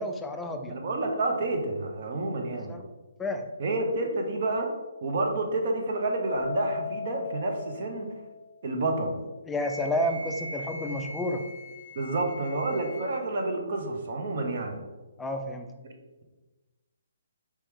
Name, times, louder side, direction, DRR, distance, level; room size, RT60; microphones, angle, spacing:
voice 1, 0.0-0.8 2.7-2.8 3.2-3.5 9.5-11.5 15.2-15.7, left 1 dB, 10° left, 5 dB, 0.3 m, -30 dB
voice 2, 0.7-2.7 3.6-4.7 5.0-8.2 8.6-9.2 11.9-14.8, right 2 dB, 50° right, 2 dB, 0.9 m, -29 dB
Keyboard (musical), 6.3-8.8, left 7 dB, 75° left, 0.4 m, -37 dB
Wind instrument woodwind instrument, 9.6-13.2, equal, 70° right, 1.1 m, -41 dB
4.5 x 3.0 x 3.5 m, 1.2 s
hypercardioid pair, 155°, 0 cm